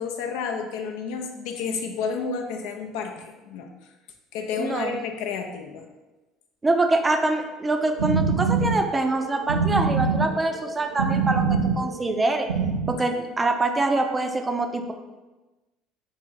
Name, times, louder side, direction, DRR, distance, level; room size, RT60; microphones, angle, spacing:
voice 1, 0.0-3.7 4.3-5.8, left 5 dB, 65° left, 4 dB, 0.5 m, -31 dB
voice 2, 4.6-5.0 6.6-12.5 12.9-14.9, right 2 dB, 20° right, 5 dB, 0.5 m, -24 dB
sound 1, 7.8-12.9, right 5 dB, 80° right, 0.3 m, -24 dB
4.0 x 3.3 x 3.7 m, 1.1 s
figure-of-eight pair, 60°, 0 cm